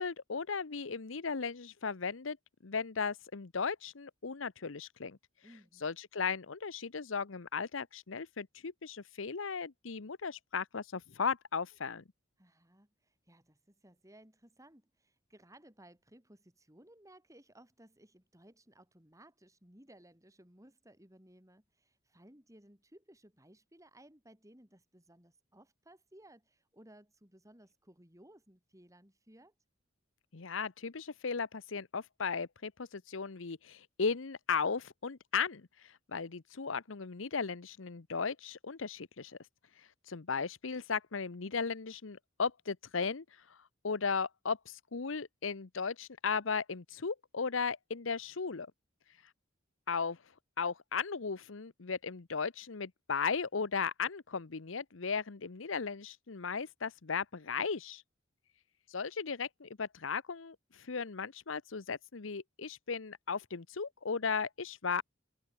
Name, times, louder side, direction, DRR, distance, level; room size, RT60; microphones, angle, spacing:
voice 1, 0.0-2.4 2.6-5.2 5.8-12.0 30.3-39.4 40.1-43.2 43.5-43.6 43.8-48.7 49.9-50.2 50.6-58.0 58.9-65.0, left 5 dB, 75° left, 0.9 m, -36 dB
voice 2, 5.4-5.9 12.4-29.5, right 1 dB, 15° right, 7.4 m, -60 dB
head